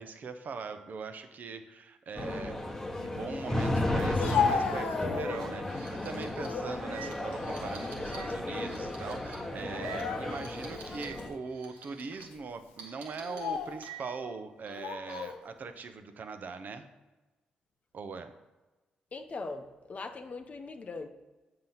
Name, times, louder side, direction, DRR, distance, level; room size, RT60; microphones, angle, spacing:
voice 1, 0.0-16.8 17.9-18.3, right 4 dB, 55° right, 9 dB, 0.7 m, -41 dB
sound 1, 2.2-11.3, left 1 dB, 10° left, 1.1 m, -34 dB
sound 2, 3.9-4.2 4.5-4.6 5.1-11.2 11.5-12.2 12.8-14.3 14.7-15.4, right 6 dB, 85° right, 1.2 m, -49 dB
Speech, 4.0-5.6 6.1-6.7 7.2-8.4 8.6-8.8 9.6-10.6 11.2-11.3 12.1-12.4 13.1-13.8 14.7-15.4, left 6 dB, 80° left, 0.6 m, -34 dB
voice 2, 19.1-21.1, left 3 dB, 45° left, 6 dB, 0.7 m, -40 dB
7.6 x 2.9 x 5.6 m, 1.1 s
hypercardioid pair, 45°, 3 cm